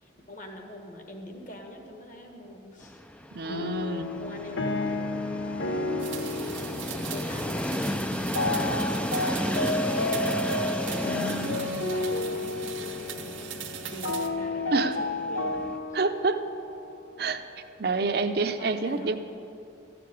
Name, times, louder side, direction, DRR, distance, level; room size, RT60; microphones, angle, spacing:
voice 1, 0.0-3.0 3.4-3.6 4.2-5.2 6.6-10.7 11.2-13.4 13.9-16.0 18.6-19.2, left 1 dB, 40° left, 3 dB, 1.5 m, -44 dB
Train, 2.8-15.8, left 1 dB, 5° left, 0.3 m, -34 dB
voice 2, 3.3-4.1 14.7-15.0 15.9-16.4 17.2-17.4 17.8-19.2, right 3 dB, 55° right, 8 dB, 0.6 m, -27 dB
sound 1, 3.5-17.5, left 2 dB, 85° left, 1.0 m, -32 dB
sound 2, 6.0-14.3, right 10 dB, 85° right, 0.9 m, -41 dB
12.5 x 6.8 x 9.3 m, 2.6 s
head